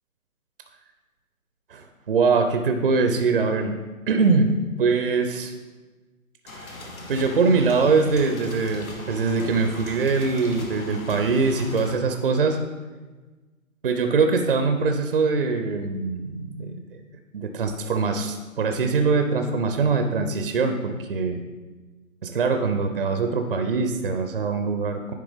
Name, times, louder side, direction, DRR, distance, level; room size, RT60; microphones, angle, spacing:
voice 1, 1.7-3.8 4.1-4.5 4.8-5.5 6.5-6.8 7.1-12.6 13.8-16.8 17.3-21.4 22.2-25.1, right 4 dB, 45° right, 6 dB, 0.4 m, -23 dB
sound 1, 6.5-11.9, left 1 dB, 80° left, 1.4 m, -39 dB
9.9 x 3.4 x 3.4 m, 1.3 s
hypercardioid pair, 150°, 42 cm